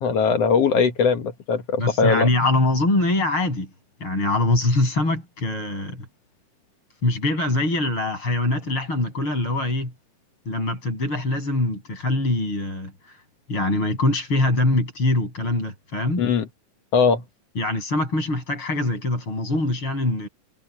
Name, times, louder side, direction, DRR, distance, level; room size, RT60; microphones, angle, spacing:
voice 1, 0.0-2.3 16.2-16.5 16.9-17.2, left 5 dB, 55° left, 2.2 m, -20 dB
voice 2, 1.8-3.7 4.0-6.1 7.0-9.9 10.5-13.2 13.5-16.3 17.6-20.3, left 2 dB, 40° left, 8.6 m, -23 dB
omnidirectional pair, 3.7 m